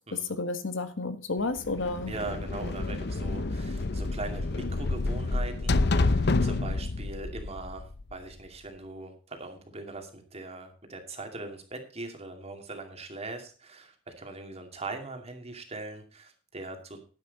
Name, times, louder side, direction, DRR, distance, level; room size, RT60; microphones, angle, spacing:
voice 1, 0.1-2.1, left 3 dB, 75° left, 10 dB, 1.4 m, -31 dB
sound 1, 1.6-8.3, left 2 dB, 60° left, 0.8 m, -29 dB
voice 2, 2.1-17.0, right 2 dB, 35° right, 5 dB, 2.5 m, -41 dB
10.5 x 10.5 x 4.1 m, 0.39 s
head